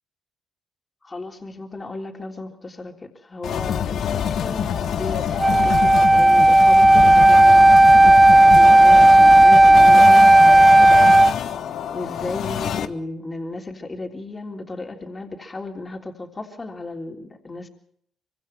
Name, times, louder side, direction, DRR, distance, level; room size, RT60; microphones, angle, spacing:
voice 1, 1.0-11.2 11.9-17.7, left 2 dB, 25° left, 2 dB, 3.5 m, -34 dB
sound 1, 3.4-12.8, left 8 dB, 70° left, 1.3 m, -26 dB
Wind instrument woodwind instrument, 5.4-11.3, right 1 dB, 15° right, 0.8 m, -11 dB
25.0 x 24.5 x 4.6 m, 0.66 s
cardioid pair, 90°, 0 cm